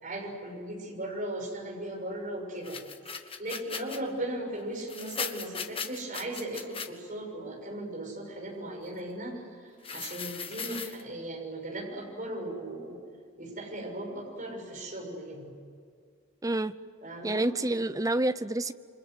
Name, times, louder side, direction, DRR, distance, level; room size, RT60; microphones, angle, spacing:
voice 1, 0.0-2.8 3.1-3.2 3.4-13.0 13.4-15.5 17.0-17.5, right 1 dB, 40° right, 0 dB, 6.7 m, -37 dB
sound 1, 2.6-4.0 4.8-6.9 9.8-11.0, left 6 dB, 25° left, 1.4 m, -38 dB
voice 2, 16.4-16.7 17.2-18.7, right 2 dB, 15° right, 13 dB, 0.6 m, -28 dB
28.5 x 25.5 x 8.0 m, 2.2 s
head